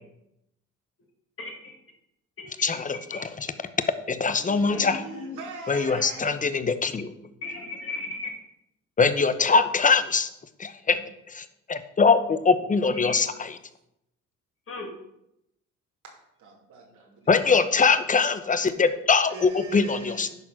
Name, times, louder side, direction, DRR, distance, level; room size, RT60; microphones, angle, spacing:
voice 1, 1.4-1.7 2.4-2.5 3.1-3.2 4.5-5.4 7.4-8.3 12.9-13.2 14.7-14.9, left 3 dB, 45° left, -1 dB, 1.8 m, -36 dB
voice 2, 2.6-3.5 4.1-5.0 5.7-7.1 9.0-10.3 10.6-11.0 11.3-13.5 17.3-20.3, left 4 dB, 25° left, 11 dB, 0.8 m, -22 dB
voice 3, 4.3-6.6 10.9-11.0 16.0-17.3 19.3-20.3, right 4 dB, 75° right, -2 dB, 2.6 m, -41 dB
11.0 x 4.4 x 5.7 m, 0.82 s
cardioid pair, 90°, 30 cm